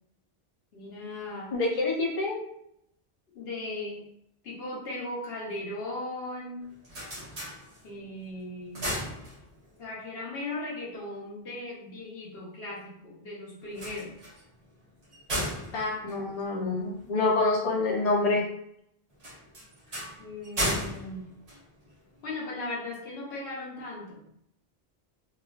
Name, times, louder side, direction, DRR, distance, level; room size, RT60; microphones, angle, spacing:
voice 1, 0.7-1.5 3.3-4.0 4.4-6.7 7.8-8.8 9.8-14.2 20.2-21.3 22.2-24.2, left 2 dB, 75° left, -4 dB, 1.1 m, -37 dB
voice 2, 1.5-2.4 15.7-18.4, left 3 dB, 45° left, -2 dB, 0.7 m, -27 dB
sound 1, 6.6-8.1 8.5-9.8 13.6-17.1 19.2-22.2, equal, 40° right, 0.9 m, -36 dB
3.0 x 2.4 x 2.4 m, 0.72 s
omnidirectional pair, 1.1 m